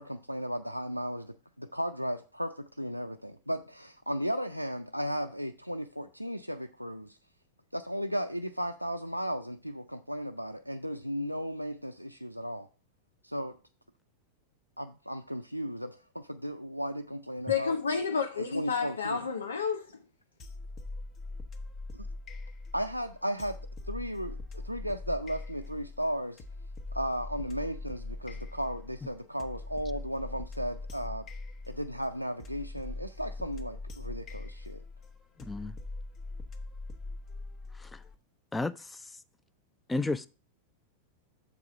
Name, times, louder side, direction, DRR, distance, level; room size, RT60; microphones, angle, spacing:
voice 1, 0.0-7.2 7.7-12.7 13.2-13.6 14.8-17.8 18.5-19.2 21.9-22.1 22.7-23.6 23.9-26.4 26.9-31.3 31.7-34.8, equal, 90° right, 0.4 m, -35 dB
voice 2, 17.5-19.9, left 6 dB, 75° left, 0.6 m, -30 dB
sound 1, 20.4-38.1, left 2 dB, 30° left, 0.9 m, -42 dB
voice 3, 35.4-35.8 37.8-38.0 38.5-39.0 39.9-40.3, left 2 dB, 10° left, 0.4 m, -32 dB
6.8 x 4.8 x 6.2 m
figure-of-eight pair, 90°, 0 cm